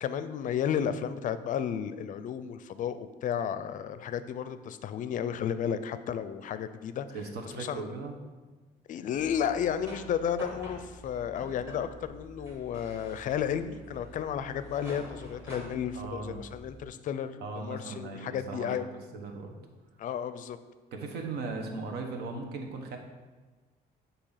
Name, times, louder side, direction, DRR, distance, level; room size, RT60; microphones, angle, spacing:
voice 1, 0.0-7.1 7.6-7.9 8.9-18.9 20.0-20.6, left 8 dB, 50° left, 12 dB, 0.4 m, -33 dB
voice 2, 7.1-8.1 15.9-16.4 17.4-18.8 19.1-19.5 20.9-23.0, right 3 dB, 75° right, 3 dB, 1.0 m, -38 dB
sound 1, 9.1-16.9, equal, 15° right, 1.6 m, -47 dB
8.5 x 2.8 x 5.7 m, 1.3 s
cardioid pair, 110°, 17 cm